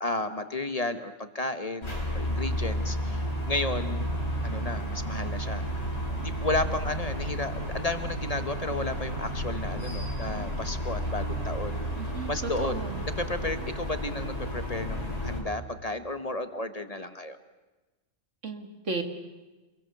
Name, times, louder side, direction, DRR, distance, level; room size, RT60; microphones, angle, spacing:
voice 1, 0.0-4.1 4.4-5.6 6.2-11.8 12.3-17.4, left 2 dB, 35° left, 10 dB, 1.2 m, -33 dB
sound 1, 1.8-15.4, equal, 60° left, 5.3 m, -32 dB
voice 2, 12.0-13.0 18.4-19.0, right 4 dB, 85° right, 6 dB, 2.4 m, -35 dB
28.5 x 22.0 x 6.7 m, 1.2 s
omnidirectional pair, 1.2 m